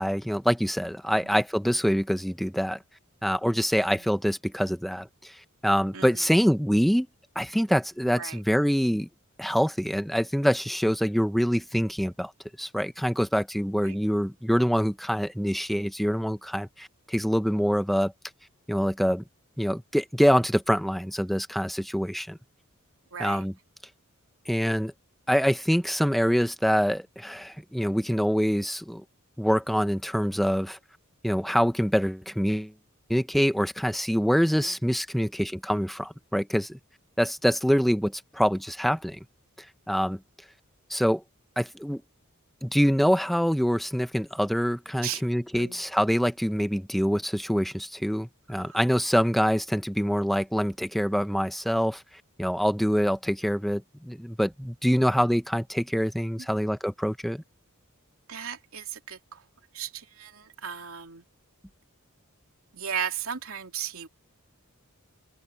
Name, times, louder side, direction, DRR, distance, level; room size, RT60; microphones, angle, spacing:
voice 1, 0.0-2.8 3.2-5.3 5.6-7.1 7.3-9.1 9.4-12.3 12.6-18.1 18.7-19.2 19.6-22.4 23.2-23.5 24.5-24.9 25.3-29.0 29.4-30.8 31.2-32.7 33.1-36.8 37.2-39.2 39.9-40.2 40.9-41.2 41.6-42.0 42.6-52.0 52.4-57.4, equal, ahead, 0.9 m, -25 dB
voice 2, 1.1-1.4 3.7-4.1 5.9-6.3 8.1-8.4 13.8-14.0 23.1-23.4 34.5-34.8 45.0-45.2 45.6-45.8 48.5-48.8 56.4-56.5 58.3-59.4 59.7-61.3 62.7-64.1, right 8 dB, 70° right, 2.9 m, -36 dB
open air
head